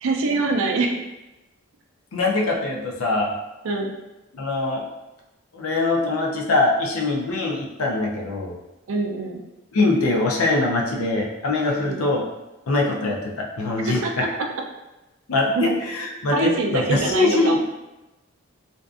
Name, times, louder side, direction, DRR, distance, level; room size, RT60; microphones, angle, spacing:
voice 1, 0.0-1.0 3.6-3.9 8.9-9.4 11.8-12.1 13.9-14.3 15.6-15.7 16.3-17.6, right 3 dB, 70° right, 2 dB, 0.4 m, -24 dB
voice 2, 2.1-3.3 4.3-4.8 5.5-8.5 9.7-12.2 12.7-14.2 15.3-17.6, left 2 dB, 75° left, -1 dB, 0.5 m, -23 dB
2.6 x 2.4 x 2.3 m, 1.0 s
head